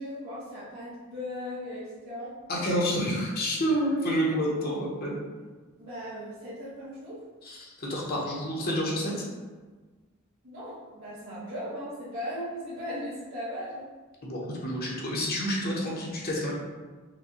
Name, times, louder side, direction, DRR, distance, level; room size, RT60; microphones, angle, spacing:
voice 1, 0.0-2.3 5.8-7.2 10.4-13.9, equal, 75° right, -13 dB, 1.2 m, -37 dB
voice 2, 2.5-5.2 7.5-9.2 14.2-16.5, equal, 45° left, -4 dB, 0.8 m, -29 dB
5.8 x 2.3 x 2.8 m, 1.3 s
head